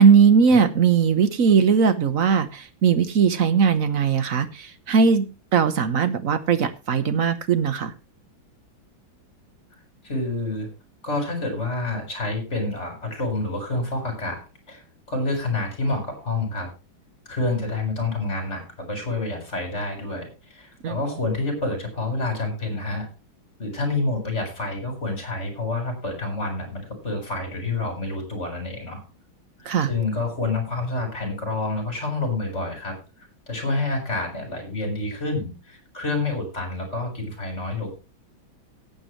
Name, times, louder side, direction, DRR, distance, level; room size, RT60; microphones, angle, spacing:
voice 1, 0.0-7.9 20.8-21.0 29.6-29.9, right 6 dB, 50° right, 11 dB, 1.2 m, -19 dB
voice 2, 10.0-10.7 11.0-14.8 15.1-16.7 17.3-23.1 23.6-29.0 29.9-33.0 33.5-37.9, left 2 dB, 30° left, 4 dB, 4.8 m, -28 dB
18.0 x 8.2 x 3.1 m, 0.30 s
omnidirectional pair, 2.2 m